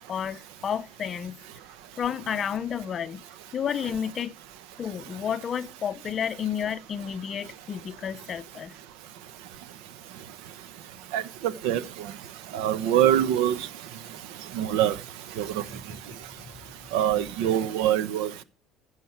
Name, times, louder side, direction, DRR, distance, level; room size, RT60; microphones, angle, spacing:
voice 1, 0.0-1.4 2.0-3.2 3.5-4.3 4.8-8.7 15.7-16.0, left 8 dB, 30° left, 0.6 m, -31 dB
voice 2, 12.5-13.6 14.5-14.9 15.4-15.6 16.9-18.4, right 11 dB, 90° right, 0.9 m, -23 dB
15.0 x 6.3 x 5.9 m
cardioid pair, 155°, 0 cm